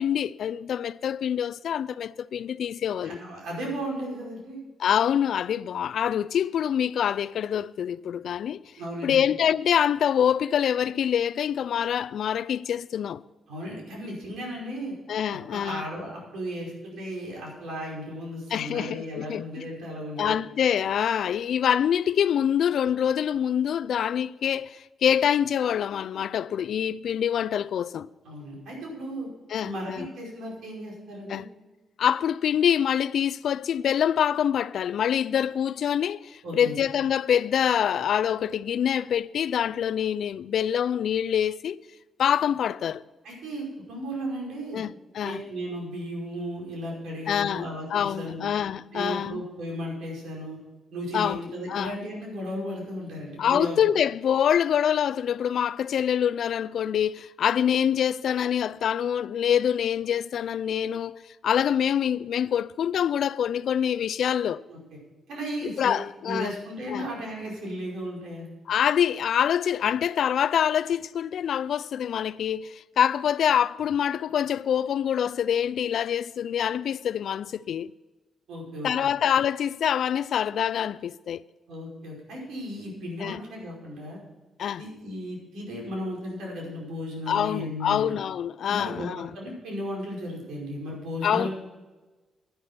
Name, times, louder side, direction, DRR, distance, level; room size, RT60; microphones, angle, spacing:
voice 1, 0.0-3.2 4.8-8.6 9.0-13.2 15.1-15.9 18.5-19.4 20.2-28.1 29.5-30.1 31.3-31.5 32.0-41.8 42.2-43.0 44.7-45.4 47.3-49.4 51.1-51.4 51.7-52.0 53.4-61.2 61.4-64.6 65.6-66.5 66.9-67.1 68.7-77.9 78.8-81.4 83.2-83.4 84.6-84.8 87.3-89.3 91.2-91.5, left 9 dB, 65° left, 0.4 m, -25 dB
voice 2, 3.0-4.6 8.8-9.2 13.5-14.9 15.3-20.4 28.2-29.3 29.6-31.5 36.4-36.8 43.2-44.8 45.2-48.5 48.9-50.6 50.9-53.8 64.7-65.0 65.3-66.0 66.2-68.5 78.5-78.9 81.7-84.2 84.8-88.1 88.6-89.1 89.3-91.5, equal, 85° right, 5.2 m, -35 dB
11.0 x 10.0 x 5.8 m
cardioid pair, 135°, 0 cm